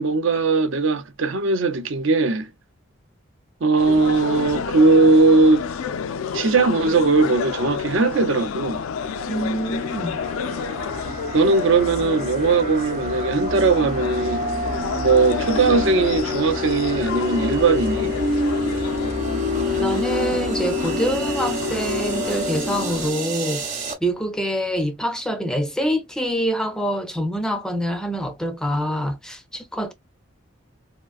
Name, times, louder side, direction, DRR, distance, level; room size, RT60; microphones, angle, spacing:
voice 1, 0.0-2.5 3.6-5.7 6.3-8.8 11.3-14.4 15.0-18.1, right 3 dB, 70° right, 0.5 m, -19 dB
sound 1, 3.8-23.1, left 6 dB, 85° left, 0.4 m, -30 dB
sound 2, 9.0-23.9, left 1 dB, 35° right, 0.9 m, -27 dB
voice 2, 9.3-10.1 19.8-29.9, equal, 5° left, 0.4 m, -25 dB
3.6 x 2.4 x 2.3 m
head